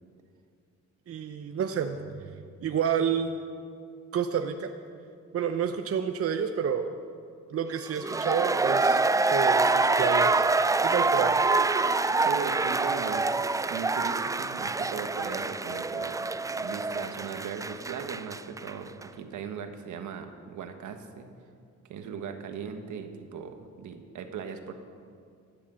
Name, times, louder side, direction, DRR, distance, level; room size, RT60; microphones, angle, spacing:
voice 1, 1.1-3.4 4.1-4.7 5.3-6.9 7.5-9.0 9.3-10.4 10.8-11.4, right 7 dB, 50° right, 6 dB, 0.8 m, -29 dB
sound 1, 7.9-18.7 19.0-19.1, right 3 dB, 10° right, 0.3 m, -26 dB
voice 2, 12.2-21.3 21.9-24.7, right 6 dB, 75° right, 6 dB, 1.4 m, -38 dB
16.0 x 10.5 x 6.3 m, 2.3 s
cardioid pair, 90°, 30 cm